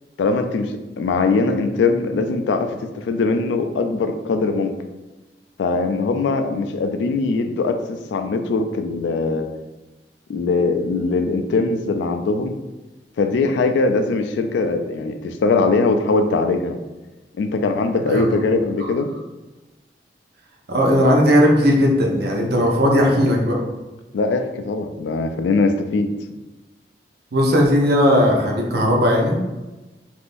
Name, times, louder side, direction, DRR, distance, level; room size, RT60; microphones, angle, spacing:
voice 1, 0.2-4.7 5.6-9.5 10.3-12.5 13.2-16.8 17.4-19.1 24.1-26.1, left 3 dB, 85° left, 7 dB, 0.3 m, -21 dB
voice 2, 20.7-23.6 27.3-29.4, equal, 65° right, 0 dB, 0.6 m, -17 dB
3.5 x 2.5 x 2.5 m, 1.1 s
head